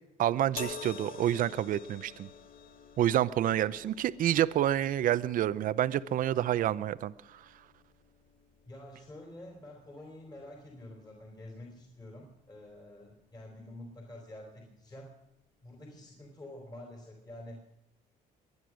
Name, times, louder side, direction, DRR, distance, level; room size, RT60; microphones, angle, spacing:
voice 1, 0.2-2.3 3.0-7.1, right 11 dB, 55° right, 15 dB, 0.6 m, -28 dB
sound 1, 0.6-13.9 14.8-15.0, left 5 dB, 65° left, 1.7 m, -50 dB
voice 2, 3.6-3.9 8.7-15.1 15.6-17.7, left 1 dB, 25° left, 0 dB, 4.1 m, -48 dB
23.0 x 9.7 x 6.3 m, 0.82 s
cardioid pair, 110°, 17 cm